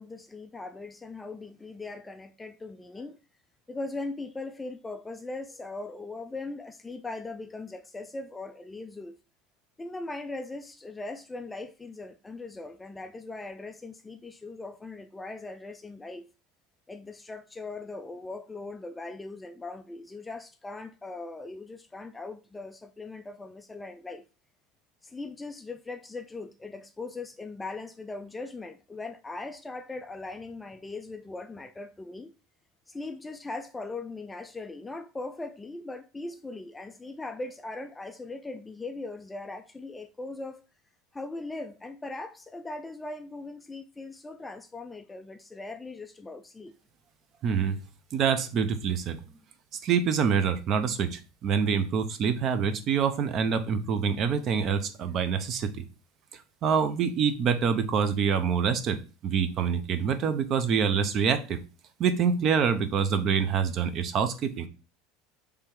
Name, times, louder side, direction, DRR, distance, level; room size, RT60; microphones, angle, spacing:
voice 1, 0.0-3.2 3.7-9.2 9.8-16.3 16.9-24.3 25.0-32.3 32.9-40.6 41.1-46.8, left 3 dB, 10° left, 0.3 m, -39 dB
voice 2, 47.4-47.8 48.1-49.2 49.8-55.7 56.6-61.6 62.0-64.7, right 6 dB, 35° right, 0.6 m, -26 dB
3.4 x 3.3 x 4.5 m
supercardioid pair, 145°, 0 cm